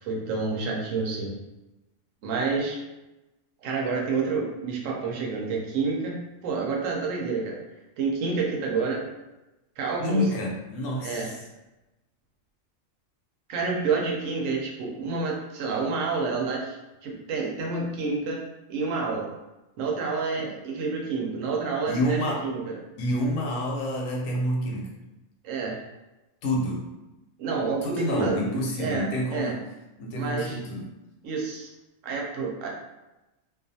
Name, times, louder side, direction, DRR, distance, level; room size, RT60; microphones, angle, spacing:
voice 1, 0.0-1.3 2.2-2.8 3.6-7.6 8.0-9.0 9.8-10.2 11.0-11.3 13.5-16.8 17.0-18.4 18.7-19.3 19.8-22.8 25.4-25.8 27.4-29.5 30.1-30.6 31.2-31.7 32.0-32.7, right 4 dB, 75° right, -1 dB, 1.0 m, -29 dB
voice 2, 10.0-11.4 21.9-22.4 23.0-24.9 26.4-26.8 27.8-29.6 30.0-30.9, equal, 80° left, -1 dB, 1.0 m, -28 dB
2.4 x 2.3 x 2.6 m, 1.0 s
omnidirectional pair, 1.4 m